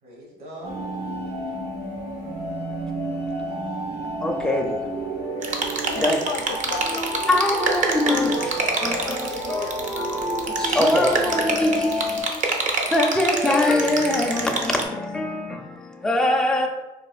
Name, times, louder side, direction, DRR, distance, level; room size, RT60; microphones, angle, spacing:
voice 1, 0.0-1.2 3.2-4.1, equal, 65° right, 1.4 m, -44 dB
sound 1, 0.6-12.2, right 1 dB, 85° right, 1.2 m, -30 dB
voice 2, 4.2-4.8 5.5-6.1 7.3-16.7, left 1 dB, 5° left, 0.4 m, -24 dB
sound 2, 5.4-14.8, right 3 dB, 45° right, 0.6 m, -27 dB
voice 3, 5.7-7.3 8.1-9.8, left 5 dB, 60° left, 0.5 m, -35 dB
4.2 x 2.5 x 2.4 m
cardioid pair, 110°, 17 cm